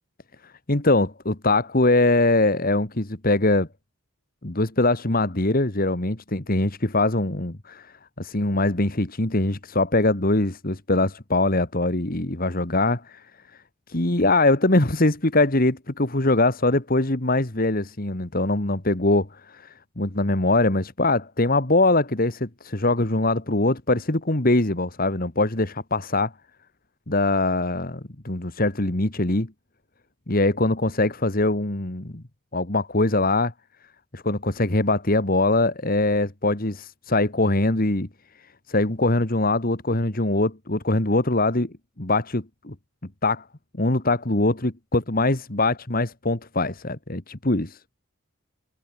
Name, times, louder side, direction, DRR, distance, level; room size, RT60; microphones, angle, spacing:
voice 1, 0.4-3.7 4.4-13.3 13.9-26.3 27.1-29.5 30.3-32.2 32.5-33.5 34.1-38.1 38.7-42.8 43.2-43.4 43.7-47.8, left 2 dB, 45° left, 1.9 m, -22 dB
head